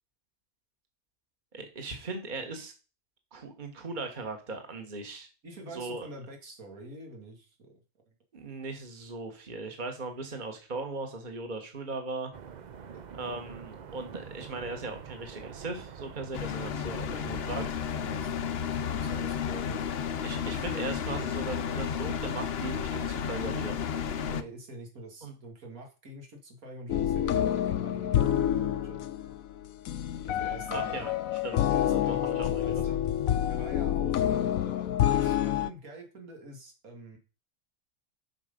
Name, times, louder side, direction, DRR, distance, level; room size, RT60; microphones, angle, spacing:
voice 1, 1.5-2.7 3.3-5.3 5.7-6.1 8.3-12.3 13.1-17.6 20.2-23.8 25.2-25.3 30.7-31.1 31.4-32.8, right 3 dB, 35° right, 4 dB, 1.6 m, -38 dB
voice 2, 5.4-8.1 10.2-10.3 12.8-13.0 17.4-19.8 24.3-29.0 30.2-31.1 31.6-33.0 33.5-37.2, right 2 dB, 85° right, 2 dB, 2.5 m, -46 dB
sound 1, 12.3-24.4, right 7 dB, 50° right, 0.5 m, -47 dB
sound 2, 16.3-24.4, left 8 dB, 55° left, 0.8 m, -32 dB
sound 3, 26.9-35.7, left 11 dB, 80° left, 1.0 m, -28 dB
8.1 x 5.9 x 5.2 m, 0.34 s
omnidirectional pair, 1.4 m